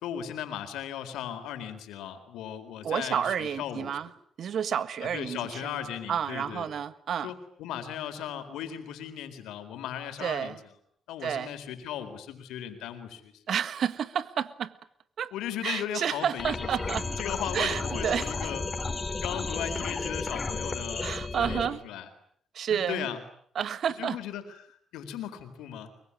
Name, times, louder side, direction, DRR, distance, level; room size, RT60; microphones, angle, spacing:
voice 1, 0.0-4.0 5.0-6.7 7.2-10.6 11.1-13.3 15.3-18.6 19.2-22.1 22.7-23.2 24.0-25.9, left 9 dB, 90° left, 9 dB, 4.1 m, -37 dB
voice 2, 2.8-4.1 4.4-5.8 6.1-7.3 10.2-10.6 11.2-11.5 13.5-14.7 15.2-15.3 15.6-17.1 17.5-18.3 19.1-19.2 21.0-21.8 22.5-23.1 23.5-24.2, right 8 dB, 65° right, 15 dB, 1.6 m, -30 dB
sound 1, 16.4-21.7, left 3 dB, 30° left, 4.5 m, -33 dB
24.5 x 23.0 x 9.8 m, 0.65 s
cardioid pair, 75°, 0 cm